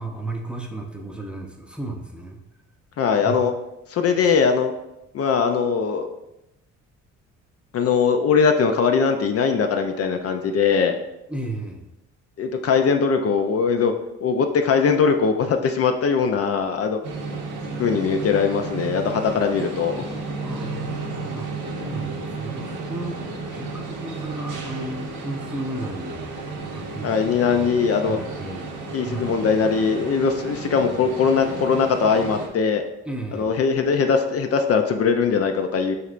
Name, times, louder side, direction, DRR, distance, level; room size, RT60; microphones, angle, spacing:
voice 1, 0.0-2.4 3.2-3.4 11.3-11.9 20.4-21.5 21.8-23.2 23.5-26.3 26.7-27.7 28.1-28.7 29.0-29.4 33.0-33.5, right 1 dB, 5° right, 1 dB, 0.7 m, -34 dB
voice 2, 3.0-3.5 3.9-4.7 5.1-6.1 7.7-11.0 12.4-13.9 14.2-17.0 17.8-20.0 27.0-28.2 28.9-32.8 33.3-36.0, left 5 dB, 50° left, 6 dB, 0.5 m, -21 dB
sound 1, 17.0-32.5, right 3 dB, 85° right, 1.0 m, -33 dB
6.6 x 3.2 x 2.5 m, 0.89 s
cardioid pair, 90°, 30 cm